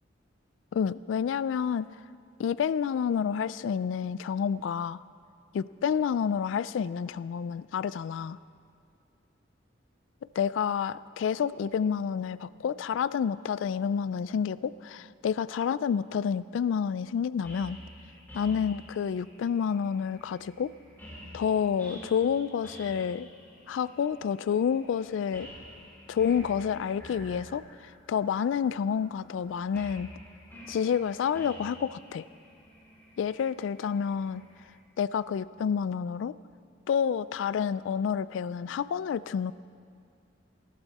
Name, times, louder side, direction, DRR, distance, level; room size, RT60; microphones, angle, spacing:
voice 1, 0.7-1.9 2.4-5.0 5.5-8.4 10.4-17.8 18.3-20.7 21.3-23.3 23.7-25.5 26.1-30.1 30.7-32.3 33.2-34.5 35.0-36.4 36.9-39.5, left 7 dB, 80° left, 18 dB, 0.3 m, -29 dB
sound 1, 17.4-34.7, equal, 10° left, 4.5 m, -49 dB
19.0 x 16.5 x 4.2 m, 2.3 s
head